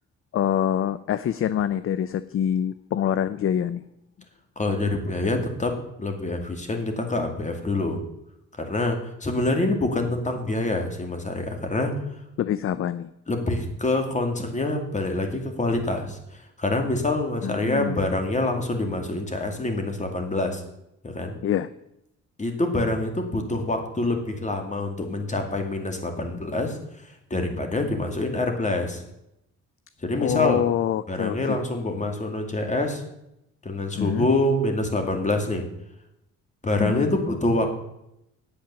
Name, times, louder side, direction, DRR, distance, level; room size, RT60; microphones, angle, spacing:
voice 1, 0.3-3.9 12.4-13.1 17.4-18.1 21.4-21.7 30.2-31.6 33.9-34.3 36.8-37.1, left 10 dB, 45° left, 15 dB, 0.5 m, -25 dB
voice 2, 4.6-8.0 8.6-11.9 13.3-20.6 21.0-21.4 22.4-26.8 27.3-29.0 30.0-30.6 31.1-33.0 33.6-35.6 36.6-37.7, left 2 dB, 25° left, 4 dB, 2.4 m, -26 dB
8.7 x 8.6 x 7.0 m, 0.82 s
cardioid pair, 90°, 30 cm